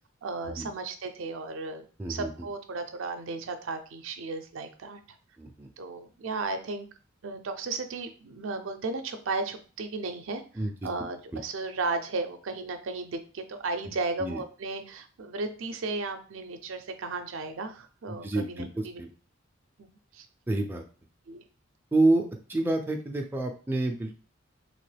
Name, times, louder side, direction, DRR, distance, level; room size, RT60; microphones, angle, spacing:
voice 1, 0.2-5.0 5.8-6.9 7.2-19.0 19.8-20.3 21.3-21.4, right 3 dB, 70° right, 8 dB, 0.5 m, -35 dB
voice 2, 5.4-5.7 10.6-10.9 14.2-14.4 18.1-19.1 20.5-20.8 21.9-24.3, right 2 dB, 10° right, 1 dB, 0.4 m, -28 dB
3.0 x 2.9 x 3.2 m, 0.38 s
head